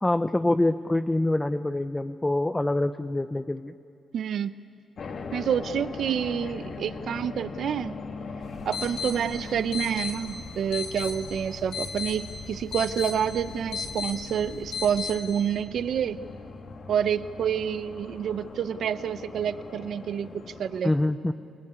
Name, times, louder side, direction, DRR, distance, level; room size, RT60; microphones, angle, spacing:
voice 1, 0.0-3.7 20.8-21.3, left 1 dB, 15° left, 8 dB, 0.6 m, -25 dB
voice 2, 4.1-4.5 5.3-7.9 8.7-16.2 16.9-20.9, right 8 dB, 70° right, 13 dB, 0.6 m, -28 dB
sound 1, 5.0-20.8, left 4 dB, 55° left, 2.0 m, -41 dB
sound 2, 8.4-15.1, left 5 dB, 90° left, 6.6 m, -36 dB
24.0 x 20.5 x 9.6 m, 2.5 s
cardioid pair, 105°, 0 cm